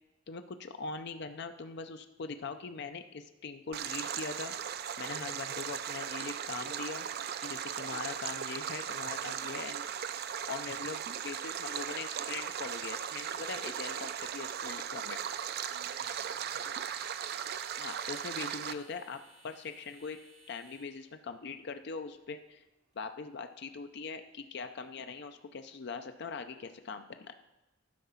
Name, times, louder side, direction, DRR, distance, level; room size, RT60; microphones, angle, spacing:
voice 1, 0.3-4.5 5.0-7.1 7.4-9.9 10.5-15.2 17.8-20.2 20.5-22.6 23.0-27.4, left 4 dB, 55° left, 8 dB, 0.5 m, -41 dB
Stream, 3.7-18.7, right 8 dB, 50° right, 0.4 m, -38 dB
voice 2, 15.7-17.0, right 3 dB, 80° right, 3 dB, 1.8 m, -61 dB
sound 1, 16.8-23.0, right 2 dB, 35° right, 2.1 m, -64 dB
12.0 x 4.8 x 5.6 m, 1.0 s
head